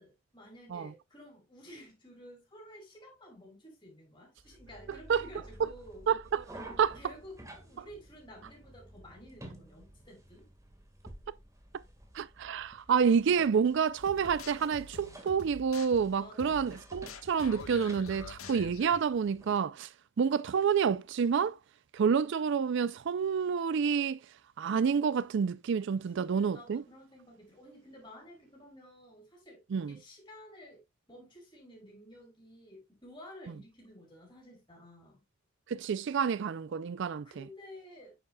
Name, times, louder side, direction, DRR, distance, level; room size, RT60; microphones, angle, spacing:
voice 1, 0.0-6.1 6.6-10.5 16.2-16.7 26.2-30.8 31.1-35.2 37.2-38.2, equal, 20° left, 5.7 m, -52 dB
sound 1, 4.4-19.6, right 1 dB, 15° right, 1.6 m, -53 dB
voice 2, 6.1-6.4 6.8-6.9 12.1-19.9 20.2-21.6 21.9-24.2 24.6-26.8 29.7-29.9 35.7-37.4, right 6 dB, 60° right, 0.4 m, -28 dB
sound 2, 14.0-19.0, left 3 dB, 85° left, 1.3 m, -47 dB
9.7 x 7.2 x 2.2 m
head